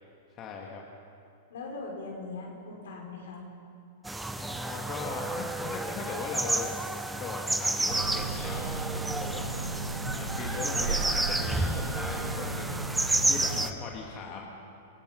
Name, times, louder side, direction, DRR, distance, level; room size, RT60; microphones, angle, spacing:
voice 1, 0.3-0.8 4.3-6.7 7.1-9.5 10.1-14.4, left 5 dB, 35° left, -1 dB, 2.3 m, -39 dB
voice 2, 1.5-3.4 14.2-14.4, left 3 dB, 70° left, 0 dB, 5.9 m, -40 dB
sound 1, 4.0-13.7, right 2 dB, 5° right, 1.1 m, -31 dB
sound 2, 7.9-13.7, right 5 dB, 75° right, 1.6 m, -35 dB
28.0 x 17.0 x 5.5 m, 2.5 s
hypercardioid pair, 105°, 0 cm